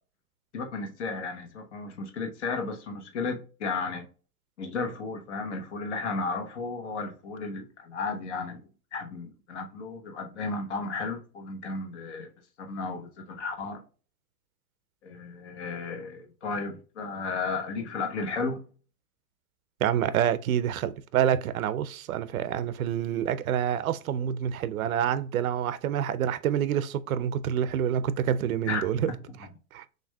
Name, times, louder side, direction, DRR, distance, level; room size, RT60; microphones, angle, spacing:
voice 1, 0.5-4.0 4.6-8.6 8.9-12.3 12.7-13.8 15.0-18.6 28.7-28.8, left 4 dB, 45° left, 1.1 m, -34 dB
voice 2, 19.8-29.1 29.7-29.8, right 9 dB, 65° right, 0.6 m, -27 dB
6.3 x 2.6 x 2.2 m
supercardioid pair, 170°, 47 cm